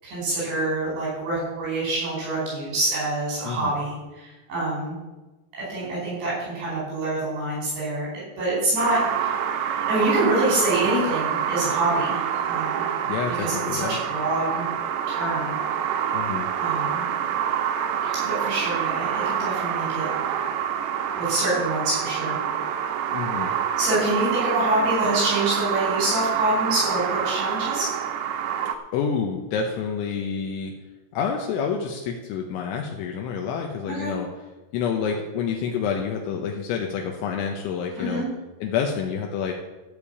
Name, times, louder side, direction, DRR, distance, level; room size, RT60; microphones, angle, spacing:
voice 1, 0.0-5.0 5.7-8.1 8.4-9.4 9.7-12.8 13.4-14.6 15.1-15.6 16.6-17.1 18.0-20.1 21.2-22.4 23.8-27.9 34.0-34.1 38.0-38.3, right 2 dB, 65° right, -7 dB, 7.2 m, -26 dB
sound 1, 8.8-28.8, right 8 dB, 80° right, 2.5 m, -27 dB
voice 2, 13.1-14.0 16.1-16.5 23.1-23.5 28.9-30.7 31.1-34.3 34.7-38.2 38.6-39.5, left 6 dB, 80° left, 2 dB, 3.2 m, -28 dB
14.5 x 5.3 x 8.3 m, 1.1 s
omnidirectional pair, 5.6 m